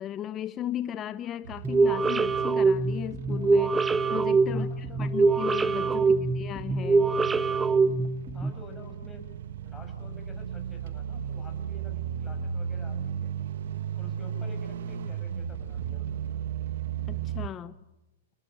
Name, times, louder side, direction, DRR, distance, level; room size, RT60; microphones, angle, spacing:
voice 1, 0.0-7.1 17.1-17.8, left 11 dB, 25° left, 13 dB, 0.8 m, -36 dB
sound 1, 1.4-17.5, right 8 dB, 70° right, 1.3 m, -36 dB
sound 2, 1.6-8.5, right 4 dB, 10° right, 1.1 m, -24 dB
voice 2, 4.5-5.0 6.0-6.3 8.3-9.2 9.6-13.3 14.0-16.4, left 2 dB, 10° left, 2 dB, 7.4 m, -49 dB
28.5 x 20.0 x 8.8 m, 0.98 s
hypercardioid pair, 135°, 0 cm